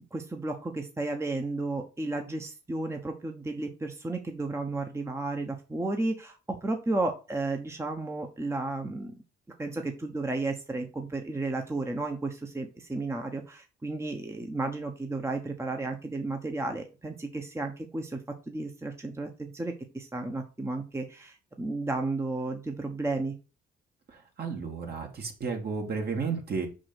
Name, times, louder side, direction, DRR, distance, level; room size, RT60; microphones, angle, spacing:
voice 1, 0.0-9.1 9.6-18.2 18.5-23.3, right 2 dB, 15° right, 4 dB, 1.1 m, -33 dB
voice 2, 24.1-26.7, right 5 dB, 50° right, 2 dB, 2.4 m, -33 dB
5.3 x 5.0 x 6.0 m, 0.32 s
cardioid pair, 90°, 20 cm